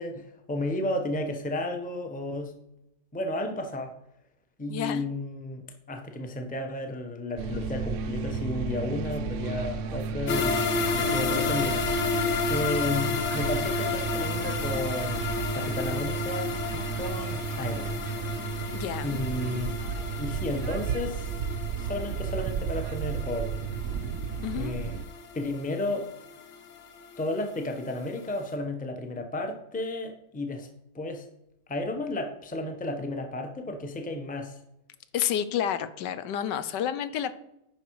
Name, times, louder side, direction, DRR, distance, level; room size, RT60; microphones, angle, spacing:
voice 1, 0.0-2.5 3.1-3.9 4.6-12.1 12.5-18.0 19.0-19.8 20.2-21.3 21.8-23.7 24.5-24.9 25.3-26.1 27.2-30.7 30.9-31.3 31.7-34.6, left 1 dB, 5° left, 5 dB, 0.7 m, -33 dB
voice 2, 4.7-5.0 18.7-19.2 24.4-24.7 35.1-37.3, left 9 dB, 85° left, 13 dB, 1.3 m, -30 dB
sound 1, 7.4-25.1, right 6 dB, 75° right, 0.7 m, -33 dB
sound 2, 10.3-27.3 27.7-27.8 28.2-28.3, left 5 dB, 50° left, 1.0 m, -32 dB
10.0 x 5.7 x 4.7 m, 0.82 s
omnidirectional pair, 1.9 m